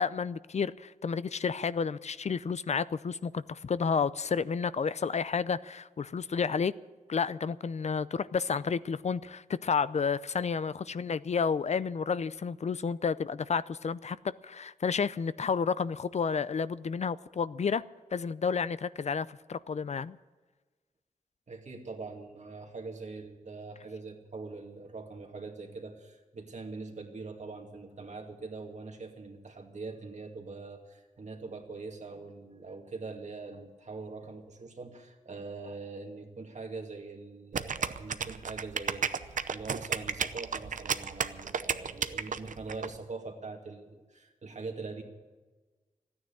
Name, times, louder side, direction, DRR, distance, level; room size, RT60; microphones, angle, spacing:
voice 1, 0.0-6.7 7.1-17.8 18.1-20.2, left 6 dB, 60° left, 0.5 m, -31 dB
voice 2, 21.5-45.0, right 3 dB, 65° right, 2.3 m, -43 dB
sound 1, 37.5-42.9, right 6 dB, 85° right, 0.7 m, -32 dB
14.0 x 9.7 x 9.7 m
wide cardioid pair, 90°, 13 cm